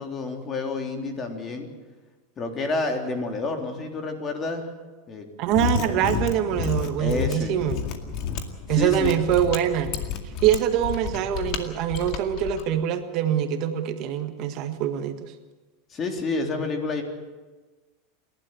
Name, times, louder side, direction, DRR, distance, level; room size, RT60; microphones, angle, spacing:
voice 1, 0.0-1.7 2.4-4.7 5.1-5.3 7.0-7.5 8.7-9.1 15.9-17.0, left 3 dB, 25° left, 4 dB, 3.6 m, -29 dB
Mechanisms, 5.4-12.6, left 6 dB, 55° left, 2.2 m, -30 dB
voice 2, 5.4-7.7 8.7-10.0 10.4-15.3, right 10 dB, 50° right, 7 dB, 1.7 m, -24 dB
28.0 x 12.0 x 9.0 m, 1.3 s
supercardioid pair, 130°, 0 cm